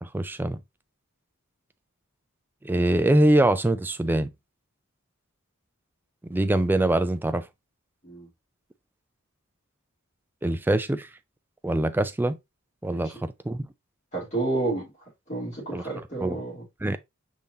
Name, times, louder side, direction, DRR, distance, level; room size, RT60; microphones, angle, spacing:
voice 1, 0.0-0.6 2.6-4.3 6.3-7.4 10.4-11.1 11.6-12.4 12.8-13.6 15.7-15.8 16.2-16.4 16.8-17.0, right 1 dB, 10° right, 0.3 m, -23 dB
voice 2, 14.1-14.8 15.3-16.6, right 2 dB, 35° left, 3.0 m, -30 dB
5.4 x 3.6 x 2.7 m
head